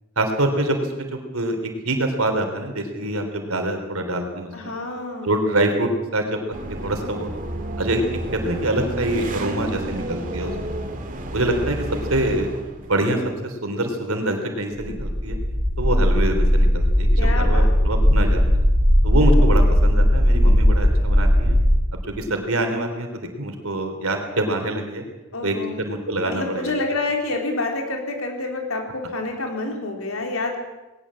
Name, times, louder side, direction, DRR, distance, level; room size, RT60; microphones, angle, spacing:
voice 1, 0.2-4.7 5.2-6.4 6.8-7.3 7.8-8.0 8.3-10.6 11.3-12.5 12.8-15.4 15.8-18.6 19.0-21.6 21.9-25.0 25.4-26.7, right 1 dB, 75° right, 5 dB, 3.4 m, -25 dB
voice 2, 4.5-5.3 17.2-17.7 25.3-25.8 26.2-30.6, left 2 dB, 75° left, 2 dB, 4.1 m, -28 dB
sound 1, 6.5-13.0, right 1 dB, 40° right, 2.4 m, -31 dB
sound 2, 14.8-21.7, equal, 25° left, 8.0 m, -17 dB
19.5 x 18.5 x 7.6 m, 1.1 s
head